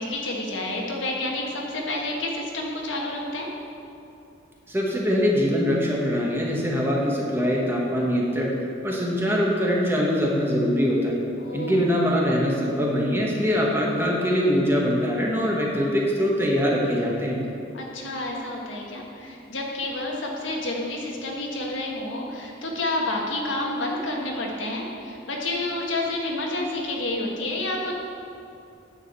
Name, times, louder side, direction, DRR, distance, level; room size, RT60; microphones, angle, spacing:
voice 1, 0.0-3.5 11.4-11.8 17.7-27.9, left 2 dB, 85° left, -1 dB, 1.5 m, -29 dB
voice 2, 4.7-8.5 8.8-11.2 11.5-17.4, equal, 10° right, -3 dB, 1.2 m, -23 dB
9.4 x 4.9 x 6.9 m, 2.7 s
head